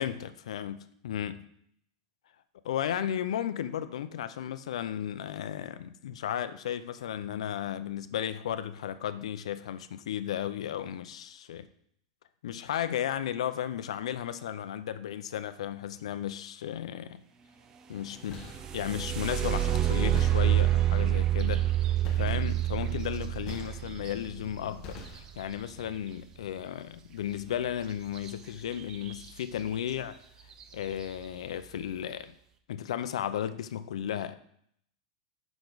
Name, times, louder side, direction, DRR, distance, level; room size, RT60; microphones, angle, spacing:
voice 1, 0.0-1.4 2.7-11.7 12.4-17.2 17.9-18.5 18.7-21.7 22.2-30.1 30.7-32.3 32.7-34.4, left 10 dB, 80° left, 12 dB, 0.5 m, -34 dB
sound 1, 18.1-18.8 20.1-20.9 22.0-24.2 24.8-25.6, left 3 dB, 30° left, 1.1 m, -46 dB
sound 2, 18.3-26.1 28.2-28.3 28.7-29.3 29.9-30.0 30.5-30.8, right 12 dB, 20° right, 0.4 m, -28 dB
6.8 x 6.0 x 4.0 m, 0.68 s
supercardioid pair, 170°, 3 cm